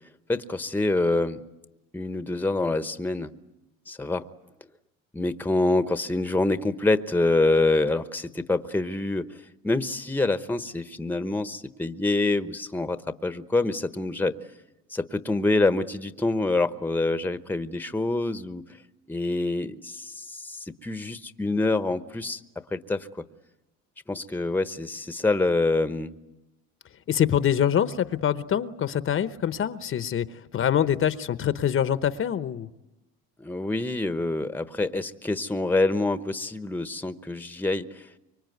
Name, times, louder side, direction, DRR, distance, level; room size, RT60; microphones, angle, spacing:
voice 1, 0.3-1.4 1.9-3.3 3.9-4.2 5.1-9.3 9.6-14.4 14.9-18.6 19.1-22.4 22.7-23.1 24.1-26.1 33.4-38.1, left 2 dB, 5° left, 12 dB, 1.0 m, -26 dB
voice 2, 27.1-32.7, left 9 dB, 45° left, 13 dB, 1.0 m, -25 dB
25.0 x 24.0 x 9.4 m, 0.94 s
cardioid pair, 105°, 30 cm